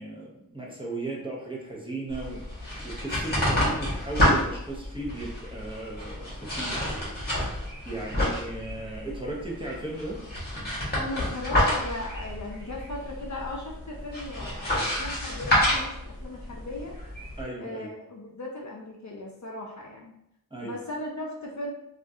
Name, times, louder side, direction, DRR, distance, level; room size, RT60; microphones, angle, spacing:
voice 1, 0.0-2.4 2.8-6.8 7.8-10.2 17.4-17.9 20.5-20.7, right 2 dB, 15° right, -4 dB, 0.8 m, -36 dB
sound 1, 2.1-17.4, left 1 dB, 25° left, 1.5 m, -29 dB
voice 2, 10.9-17.0 17.6-20.2 20.6-21.7, left 2 dB, 50° left, -1 dB, 0.6 m, -37 dB
3.5 x 2.4 x 2.7 m, 0.82 s
wide cardioid pair, 80°, 36 cm